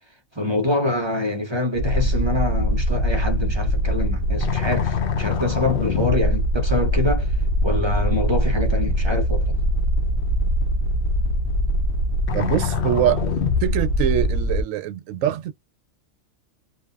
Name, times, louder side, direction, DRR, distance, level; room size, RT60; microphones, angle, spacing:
voice 1, 0.3-7.4 7.6-9.6, left 2 dB, 30° right, 0.5 m, -25 dB
sound 1, 1.7-14.6, left 1 dB, 60° left, 0.6 m, -22 dB
voice 2, 12.3-13.2 13.6-15.5, right 12 dB, 75° right, 1.0 m, -23 dB
2.7 x 2.3 x 2.3 m
omnidirectional pair, 1.4 m